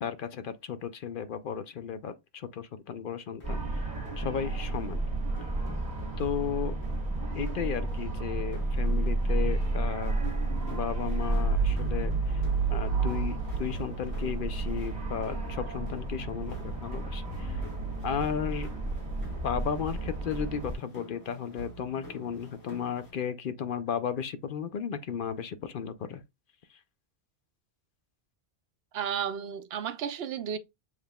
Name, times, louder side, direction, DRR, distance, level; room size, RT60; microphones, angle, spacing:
voice 1, 0.0-3.8 4.2-5.0 6.2-6.8 7.3-10.1 10.7-12.4 12.7-17.6 18.0-18.7 19.4-26.2, left 7 dB, 60° left, 0.7 m, -34 dB
sound 1, 3.4-23.1, equal, 85° left, 2.2 m, -48 dB
sound 2, 3.4-20.7, right 3 dB, 40° right, 1.7 m, -31 dB
voice 2, 28.9-30.6, right 8 dB, 75° right, 0.8 m, -33 dB
7.2 x 3.2 x 2.2 m
omnidirectional pair, 1.1 m